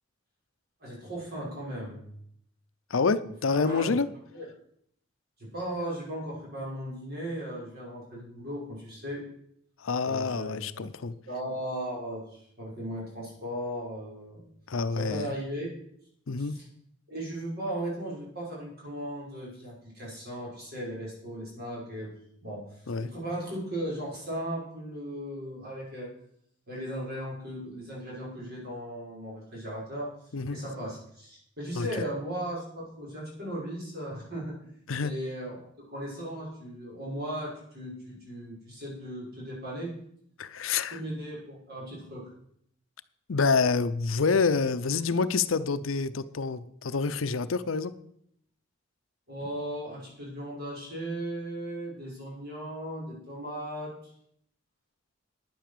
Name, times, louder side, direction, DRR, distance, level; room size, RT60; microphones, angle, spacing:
voice 1, 0.8-2.1 3.5-4.0 4.3-4.5 5.4-9.2 10.0-10.8 11.3-14.4 15.0-15.7 16.4-16.7 17.1-22.1 22.4-26.1 26.7-30.1 30.5-39.9 40.9-42.3 49.3-53.9, right 1 dB, 50° right, -4 dB, 6.1 m, -37 dB
voice 2, 2.9-4.1 9.8-11.1 14.7-15.3 16.3-16.6 22.9-23.1 30.3-30.6 31.8-31.9 34.9-35.1 40.4-41.0 43.3-47.9, left 4 dB, 80° left, 14 dB, 0.7 m, -27 dB
10.5 x 9.3 x 6.7 m, 0.70 s
head